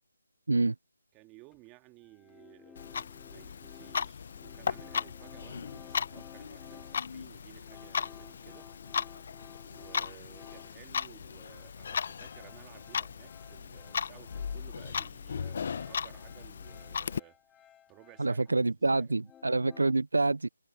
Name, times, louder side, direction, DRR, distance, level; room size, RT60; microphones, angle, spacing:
voice 1, 1.1-8.7 9.6-19.1, right 24 dB, 15° right, 1.9 m, -56 dB
sound 1, 1.5-1.6 2.0-10.9 11.2-14.8 15.0-18.7 19.0-19.9, left 10 dB, 10° left, 3.5 m, -56 dB
Clock, 2.8-17.2, left 6 dB, 45° left, 0.8 m, -37 dB
voice 2, 18.2-20.5, right 3 dB, 80° right, 0.3 m, -27 dB
figure-of-eight pair, 160°, 0 cm